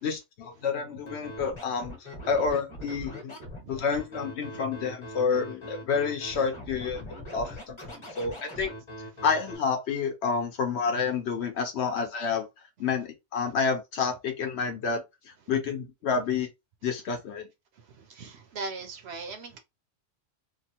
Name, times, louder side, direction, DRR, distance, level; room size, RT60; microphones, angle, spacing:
voice 1, 0.0-3.3 3.7-7.1 7.3-8.7 9.2-12.5 12.8-16.5 16.8-17.5, left 5 dB, 65° left, 0.9 m, -29 dB
Scratching (performance technique), 1.1-9.6, equal, 25° left, 1.0 m, -41 dB
voice 2, 18.0-19.6, right 3 dB, 65° right, 0.7 m, -39 dB
2.9 x 2.1 x 2.8 m
omnidirectional pair, 1.3 m